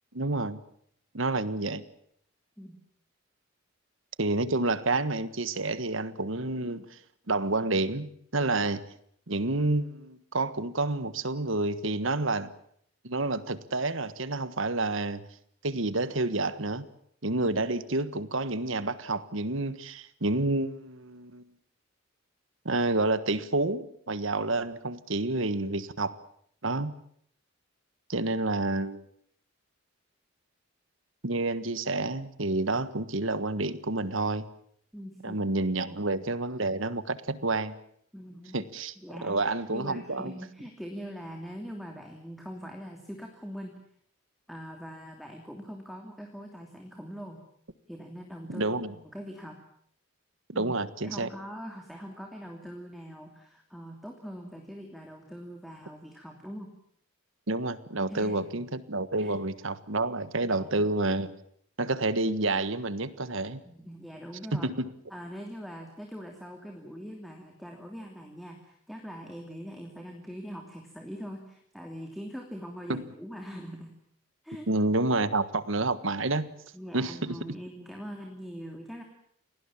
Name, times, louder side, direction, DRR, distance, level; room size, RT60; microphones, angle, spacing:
voice 1, 0.1-0.6 1.1-1.9 4.2-7.0 7.3-8.8 9.3-12.5 13.0-15.2 15.6-16.9 17.2-21.4 22.6-26.2 26.6-27.0 28.1-29.0 31.2-34.4 35.2-37.7 38.5-38.9 39.2-40.3 48.5-48.9 50.5-51.3 57.5-61.3 61.8-63.6 64.5-64.9 72.9-73.0 74.7-76.5 76.9-77.4, right 2 dB, 70° right, 14 dB, 1.5 m, -29 dB
voice 2, 34.9-35.4 35.7-36.0 38.1-38.6 39.0-43.7 44.5-47.4 47.9-49.6 50.5-50.8 51.0-56.7 58.1-58.6 59.2-59.3 60.4-60.9 63.6-64.7 65.1-73.9 74.4-74.7 76.7-79.0, equal, ahead, 2 dB, 2.8 m, -42 dB
28.5 x 19.0 x 7.3 m, 0.67 s
head